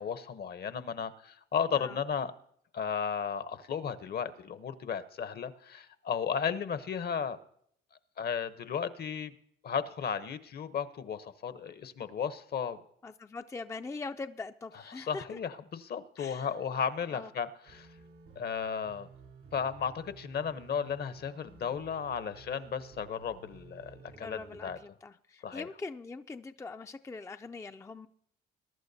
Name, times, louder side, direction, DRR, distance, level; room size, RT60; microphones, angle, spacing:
voice 1, 0.0-2.3 2.7-7.4 8.2-9.3 9.6-12.8 14.9-17.9 18.4-19.1 19.5-24.8 25.4-25.7, left 7 dB, 55° left, 13 dB, 0.8 m, -34 dB
voice 2, 13.0-15.3 16.2-16.5 17.1-17.3 24.1-28.1, left 3 dB, 15° left, 8 dB, 0.4 m, -42 dB
sound 1, 17.6-24.8, right 5 dB, 85° right, 3.3 m, -54 dB
21.5 x 11.5 x 2.7 m, 0.66 s
cardioid pair, 90°, 20 cm